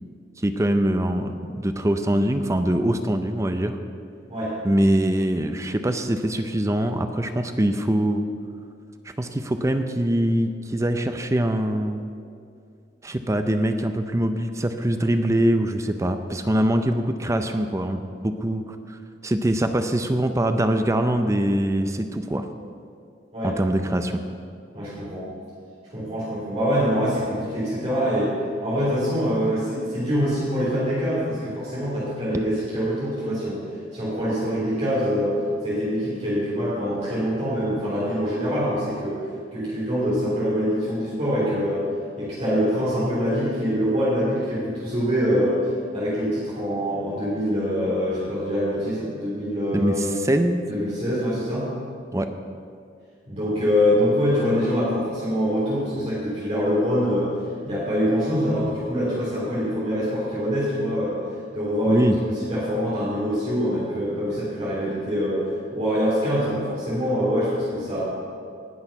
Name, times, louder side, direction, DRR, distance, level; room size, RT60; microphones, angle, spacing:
voice 1, 0.4-3.8 4.6-8.3 9.2-12.0 13.0-22.4 23.4-24.2 49.7-50.6 52.1-52.3 61.9-62.2, right 1 dB, 15° right, 7 dB, 0.5 m, -23 dB
voice 2, 24.7-25.3 25.9-28.3 28.6-33.6 33.9-35.4 35.6-39.3 39.5-41.9 42.2-50.1 50.7-51.7 53.3-57.3 57.6-61.2 61.5-68.0, equal, 35° right, -10 dB, 3.4 m, -24 dB
18.5 x 6.3 x 5.8 m, 2.3 s
head